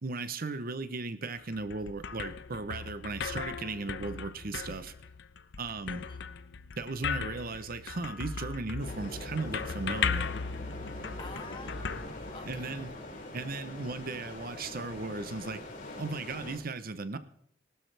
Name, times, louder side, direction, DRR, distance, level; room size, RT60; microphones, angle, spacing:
voice 1, 0.0-4.9 5.6-6.1 6.8-10.3 12.4-12.9 13.3-15.6 16.0-17.2, right 3 dB, 50° right, 12 dB, 0.8 m, -36 dB
sound 1, 1.4-12.9, left 6 dB, 65° left, 0.7 m, -37 dB
voice 2, 5.9-6.3 11.2-12.9, left 3 dB, 25° left, 6 dB, 1.6 m, -48 dB
sound 2, 8.8-16.6, left 1 dB, 45° left, 5.3 m, -43 dB
19.0 x 12.5 x 3.3 m, 0.67 s
head